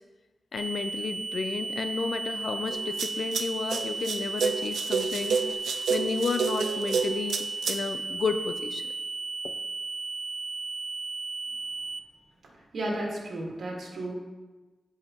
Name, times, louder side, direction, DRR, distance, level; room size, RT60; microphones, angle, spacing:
voice 1, 0.5-5.4 5.9-8.9 9.4-9.5, left 4 dB, 60° left, 8 dB, 0.5 m, -32 dB
sound 1, 0.6-12.0, right 3 dB, 30° right, 0.4 m, -35 dB
sound 2, 2.7-7.8, right 5 dB, 90° right, 0.5 m, -29 dB
voice 2, 12.7-14.1, right 1 dB, 65° right, -2 dB, 1.7 m, -33 dB
10.5 x 4.8 x 2.9 m, 1.2 s
wide cardioid pair, 115°, 0 cm